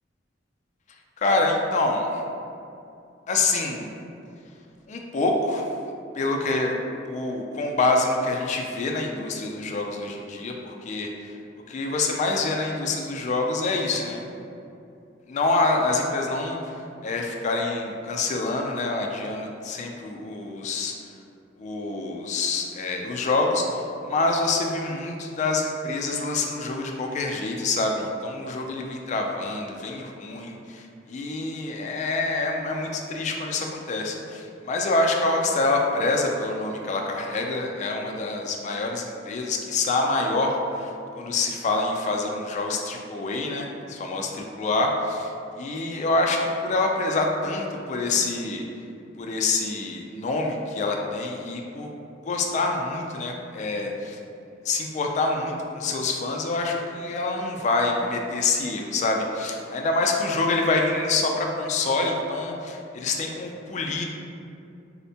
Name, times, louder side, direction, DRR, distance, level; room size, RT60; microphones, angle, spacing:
voice 1, 1.2-2.2 3.3-3.9 4.9-5.6 6.1-6.7 7.1-11.1 11.7-14.2 15.3-20.9 21.6-40.9 41.2-45.3 45.6-48.6 49.2-51.9 52.2-54.2 54.7-64.0, left 3 dB, 40° left, 1 dB, 0.3 m, -26 dB
4.2 x 2.1 x 2.7 m, 2.6 s
head